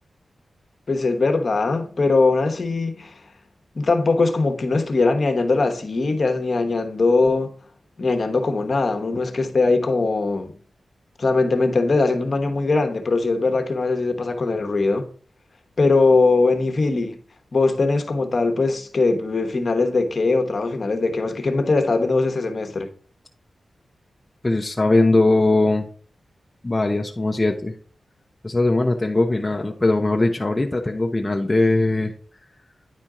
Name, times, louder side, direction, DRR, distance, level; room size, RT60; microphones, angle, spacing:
voice 1, 0.9-3.2 3.7-7.5 8.0-10.5 11.2-15.1 15.8-17.2 17.5-22.9, left 3 dB, 45° left, 1.1 m, -21 dB
voice 2, 24.4-25.9 26.6-27.7 28.4-32.1, left 2 dB, 20° left, 0.6 m, -20 dB
9.9 x 4.4 x 3.7 m
wide cardioid pair, 115°, 0 cm